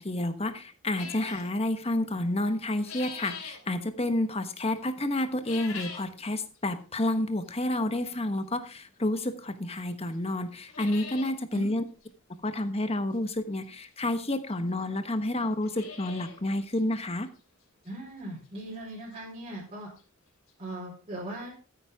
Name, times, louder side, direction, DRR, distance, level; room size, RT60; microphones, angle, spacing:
voice 1, 0.0-11.8 12.4-17.3, left 1 dB, 30° left, 9 dB, 1.2 m, -30 dB
sound 1, 0.9-1.5 2.5-3.6 5.3-6.1 6.6-6.7 7.5-7.6 9.3-9.4 9.8-9.9 10.1-10.2 10.5-11.3 11.7-11.8 12.0-12.1 13.6-13.7 14.5-14.6 14.8-14.9 15.4-16.4 16.8-16.9 17.4-17.5 17.9-18.0 19.7-19.8 20.0-20.1 20.5-20.6, left 5 dB, 75° left, 3.2 m, -42 dB
voice 2, 17.8-19.9 20.6-21.5, right 1 dB, 30° right, -5 dB, 4.4 m, -39 dB
14.0 x 9.2 x 3.6 m, 0.35 s
head